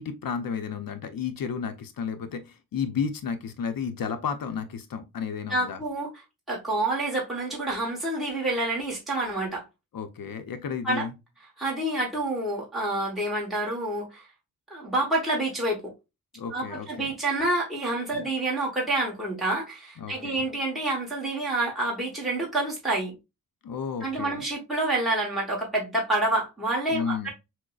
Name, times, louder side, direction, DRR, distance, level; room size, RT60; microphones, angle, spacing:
voice 1, 0.0-5.8 9.9-11.1 16.3-17.1 18.1-18.3 20.0-20.5 23.6-24.4 26.9-27.3, left 6 dB, 75° left, 0.6 m, -32 dB
voice 2, 5.5-6.1 6.5-9.7 10.8-11.1 11.6-14.3 14.7-15.9 16.5-23.2 24.0-27.3, right 2 dB, ahead, 1.1 m, -28 dB
6.2 x 2.1 x 2.3 m
wide cardioid pair, 165°, 34 cm